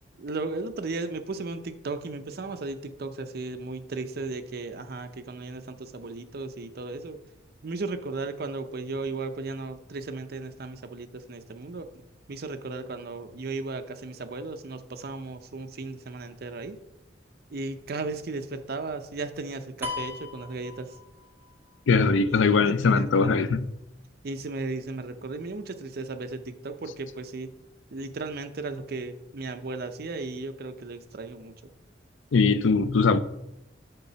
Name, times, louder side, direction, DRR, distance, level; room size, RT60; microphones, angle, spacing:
voice 1, 0.2-7.2 7.6-12.0 12.3-16.8 17.5-21.0 22.3-23.5 24.2-27.5 27.9-31.5, right 3 dB, 55° right, 0.6 m, -35 dB
sound 1, 19.8-21.5, left 4 dB, 10° right, 1.0 m, -37 dB
voice 2, 21.9-23.6 32.3-33.2, left 4 dB, 85° left, 0.4 m, -21 dB
6.8 x 4.1 x 5.6 m
head